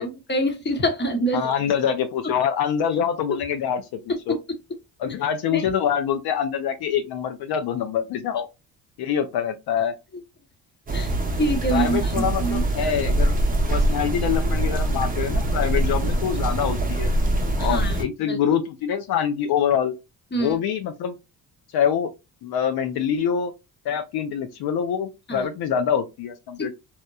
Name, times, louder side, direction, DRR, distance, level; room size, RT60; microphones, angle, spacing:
voice 1, 0.0-1.7 2.9-3.0 4.1-4.4 5.5-5.6 10.9-12.6 17.6-18.4 20.3-20.6 25.3-25.5 26.6-26.7, right 1 dB, 25° left, 0.8 m, -26 dB
voice 2, 1.3-4.0 4.3-4.4 5.0-8.5 9.0-9.9 11.7-13.3 13.7-17.1 17.6-19.9 20.4-21.2 21.7-22.1 22.4-23.5 23.8-26.7, left 8 dB, 65° left, 0.5 m, -25 dB
sound 1, 10.9-18.0, right 1 dB, 20° right, 0.7 m, -23 dB
2.9 x 2.1 x 2.2 m
cardioid pair, 80°, 40 cm